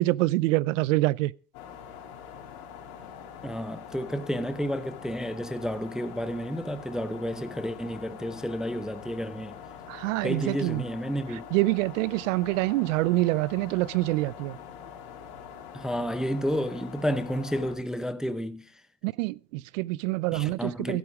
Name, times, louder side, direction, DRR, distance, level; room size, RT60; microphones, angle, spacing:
voice 1, 0.0-1.3 9.9-10.8 11.5-14.6 19.0-21.0, right 20 dB, 55° right, 0.5 m, -26 dB
sound 1, 1.5-17.7, left 7 dB, 65° left, 3.9 m, -44 dB
voice 2, 3.4-9.6 10.2-11.4 15.7-18.8 20.3-21.0, equal, ahead, 0.6 m, -31 dB
12.0 x 12.0 x 4.9 m
hypercardioid pair, 110°, 45 cm